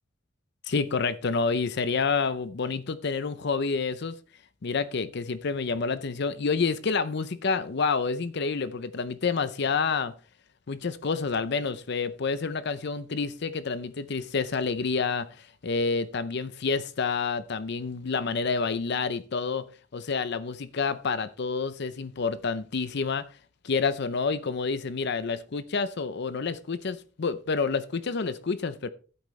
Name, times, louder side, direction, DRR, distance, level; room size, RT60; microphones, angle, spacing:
voice 1, 0.7-4.1 4.6-10.1 10.7-19.6 19.9-23.3 23.6-28.9, left 4 dB, 60° left, 0.6 m, -28 dB
14.5 x 8.3 x 3.2 m
head